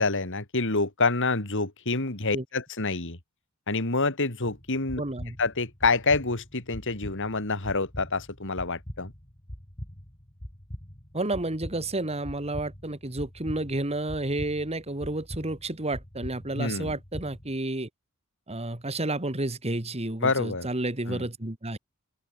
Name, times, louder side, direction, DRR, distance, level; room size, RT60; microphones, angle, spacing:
voice 1, 0.0-3.2 3.7-5.0 5.4-9.1 16.5-17.0 20.2-20.7 21.1-21.2, left 3 dB, 60° left, 3.2 m, -27 dB
sound 1, 4.6-17.6, equal, 25° left, 3.0 m, -43 dB
voice 2, 5.0-5.4 11.1-17.9 18.5-21.8, right 2 dB, 30° right, 2.3 m, -31 dB
open air
head